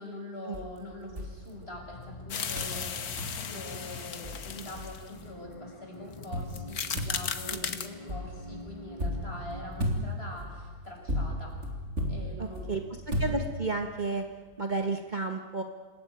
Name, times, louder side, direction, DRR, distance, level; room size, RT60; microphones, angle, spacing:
voice 1, 0.0-11.5 12.1-12.8, left 1 dB, 40° left, 0 dB, 5.9 m, -44 dB
sound 1, 0.5-2.1 2.6-2.8 3.2-3.4 3.9-4.0 4.2-5.3 6.3-13.9, equal, 50° right, 3.5 m, -35 dB
sound 2, 1.2-9.9, left 2 dB, 25° left, 1.1 m, -46 dB
sound 3, 2.3-5.2 6.1-6.3 6.5-7.9, left 7 dB, 85° left, 1.8 m, -36 dB
voice 2, 12.4-12.8 13.2-14.2 14.6-15.6, right 3 dB, 30° right, 5 dB, 1.5 m, -32 dB
27.5 x 17.0 x 9.2 m, 1.4 s
omnidirectional pair, 1.6 m